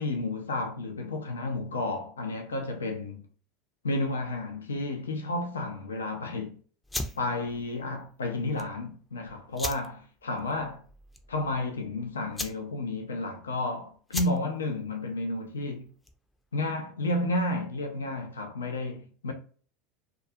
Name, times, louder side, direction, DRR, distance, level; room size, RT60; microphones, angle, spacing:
voice 1, 0.0-3.2 3.8-6.5 7.2-10.8 11.3-15.9 16.5-19.3, left 2 dB, 85° left, 0.4 m, -31 dB
sound 1, 6.8-16.4, left 1 dB, 10° left, 0.4 m, -40 dB
2.4 x 2.3 x 2.7 m
hypercardioid pair, 80°, 0 cm